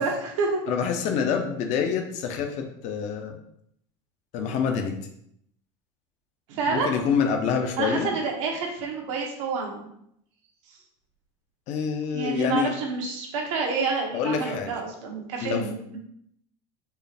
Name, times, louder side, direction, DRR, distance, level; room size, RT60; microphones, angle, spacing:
voice 1, 0.0-0.6 6.5-6.9 7.8-9.9 12.1-16.0, right 4 dB, 90° right, 0 dB, 1.1 m, -28 dB
voice 2, 0.7-3.4 4.3-5.0 6.7-8.1 11.7-12.7 14.1-14.7 15.4-15.6, left 6 dB, 50° left, 4 dB, 0.6 m, -26 dB
4.5 x 2.5 x 3.3 m, 0.72 s
cardioid pair, 145°, 15 cm